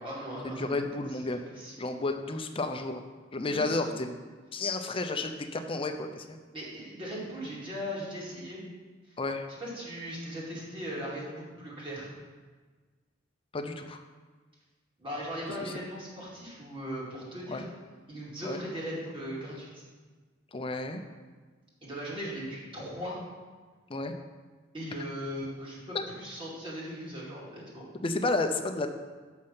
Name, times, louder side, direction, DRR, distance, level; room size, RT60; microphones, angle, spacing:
voice 1, 0.0-0.9 1.5-1.7 3.5-3.8 6.5-8.6 9.6-12.1 15.0-17.6 18.1-19.7 21.8-23.2 24.7-27.8, equal, 30° right, -6 dB, 2.4 m, -38 dB
voice 2, 0.6-1.4 1.8-3.0 3.3-4.1 4.5-6.4 9.2-9.5 13.5-14.0 15.6-15.7 17.5-17.6 18.4-18.6 20.5-21.0 23.9-24.1 25.9-26.0 28.0-28.9, left 2 dB, 30° left, 6 dB, 0.6 m, -31 dB
6.4 x 6.0 x 5.6 m, 1.4 s
head